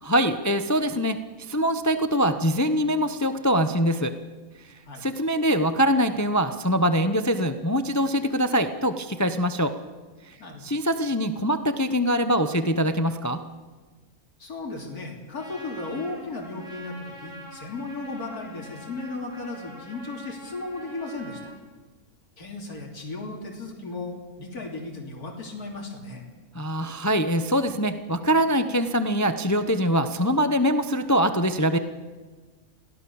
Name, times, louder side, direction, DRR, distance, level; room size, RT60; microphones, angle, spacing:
voice 1, 0.0-4.1 5.0-9.7 10.3-10.4 10.6-13.4 26.5-31.8, equal, 15° left, 9 dB, 0.8 m, -23 dB
voice 2, 14.4-21.5 22.4-26.3, left 2 dB, 80° left, 0 dB, 3.6 m, -35 dB
Trumpet, 15.3-21.5, equal, ahead, 7.9 m, -45 dB
23.0 x 17.0 x 7.1 m, 1.3 s
omnidirectional pair, 1.6 m